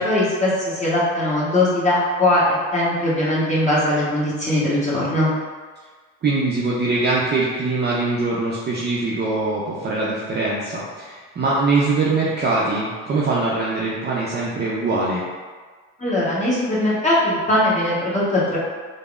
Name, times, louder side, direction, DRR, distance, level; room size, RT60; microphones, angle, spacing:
voice 1, 0.0-5.3 16.0-18.6, left 1 dB, 15° left, -8 dB, 1.1 m, -20 dB
voice 2, 6.2-15.2, right 3 dB, 25° right, -5 dB, 0.4 m, -22 dB
3.3 x 2.0 x 2.4 m, 1.5 s
hypercardioid pair, 65°, 43 cm